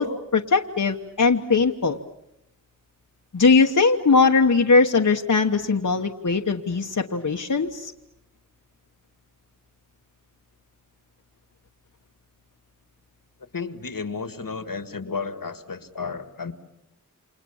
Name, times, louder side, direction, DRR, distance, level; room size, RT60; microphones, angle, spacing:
voice 1, 0.0-2.0 3.3-7.9, left 4 dB, 65° left, 2 dB, 1.3 m, -20 dB
voice 2, 13.5-16.5, left 4 dB, 80° left, 10 dB, 2.0 m, -32 dB
29.5 x 27.0 x 7.2 m, 0.83 s
wide cardioid pair, 45°, 33 cm